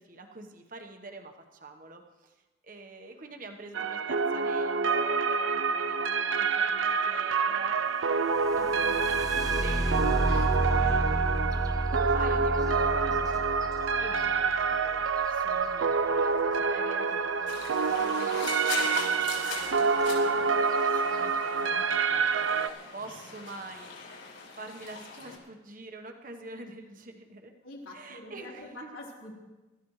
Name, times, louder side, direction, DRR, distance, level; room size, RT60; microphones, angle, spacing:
voice 1, 0.0-2.3 2.6-7.8 8.6-10.2 10.8-11.0 11.9-15.0 15.3-18.6 18.9-20.4 20.9-23.9 24.5-27.5 27.9-28.9, right 2 dB, 40° right, 4 dB, 1.2 m, -45 dB
sound 1, 3.7-22.7, right 5 dB, 75° right, 0.6 m, -27 dB
sound 2, 8.4-16.2 18.3-18.4 18.8-19.4 20.0-20.1 20.6-21.0, right 1 dB, 20° right, 0.6 m, -31 dB
voice 2, 10.3-10.9 27.6-29.3, left 1 dB, 85° left, -3 dB, 4.1 m, -44 dB
sound 3, 17.5-25.4, left 5 dB, 65° left, 5.2 m, -40 dB
25.0 x 13.5 x 3.2 m, 1.1 s
head